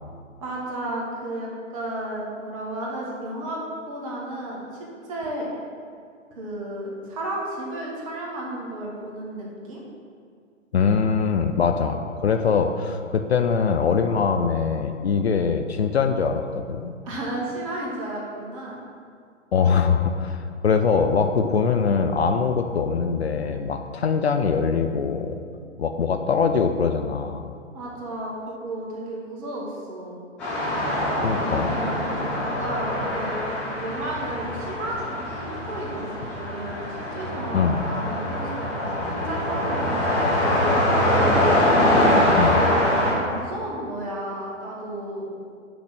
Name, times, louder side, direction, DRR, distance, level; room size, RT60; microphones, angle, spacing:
voice 1, 0.4-3.6 3.9-4.6 5.0-5.5 6.3-9.8 17.0-18.8 27.7-30.2 31.3-33.4 33.6-38.5 39.1-41.7 42.5-45.3, right 1 dB, 25° right, -3 dB, 1.2 m, -33 dB
voice 2, 10.7-16.9 19.5-25.4 25.8-27.4 31.2-31.7 37.5-37.9 42.4-42.6, left 5 dB, 55° left, 7 dB, 0.5 m, -22 dB
sound 1, 30.4-43.1, left 1 dB, 5° left, 0.5 m, -23 dB
6.1 x 3.9 x 6.2 m, 2.2 s
figure-of-eight pair, 130°, 38 cm